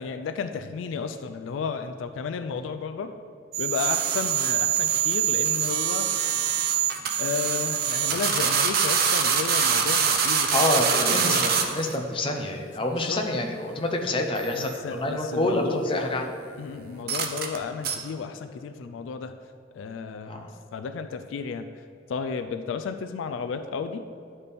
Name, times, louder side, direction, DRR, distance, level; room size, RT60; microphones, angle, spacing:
voice 1, 0.0-3.1 3.6-6.1 7.2-11.6 11.9-12.0 12.9-13.2 14.5-15.8 16.6-19.3 19.8-21.7 22.1-24.0, left 5 dB, 75° left, 9 dB, 0.3 m, -33 dB
sound 1, 3.5-11.9 14.4-14.7 17.1-17.6 17.8-18.0, right 7 dB, 50° right, 0.6 m, -24 dB
voice 2, 10.5-16.3 20.3-20.5, left 1 dB, 25° left, 3 dB, 0.6 m, -27 dB
10.0 x 4.2 x 3.4 m, 2.5 s
head